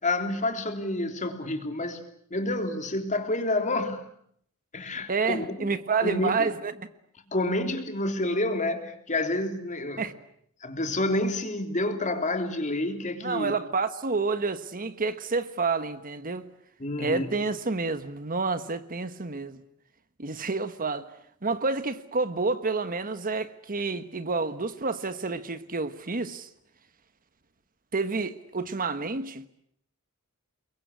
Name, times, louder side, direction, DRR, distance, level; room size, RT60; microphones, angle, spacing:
voice 1, 0.0-2.0 2.3-4.0 4.7-5.7 6.0-6.5 7.3-10.0 10.6-13.5 16.8-17.3, left 2 dB, 35° left, 3.3 m, -29 dB
voice 2, 5.1-6.9 10.0-10.1 13.2-16.5 17.0-19.6 20.2-21.1 21.4-26.5 27.9-29.5, right 4 dB, 40° right, 1.3 m, -29 dB
30.0 x 22.5 x 8.3 m
head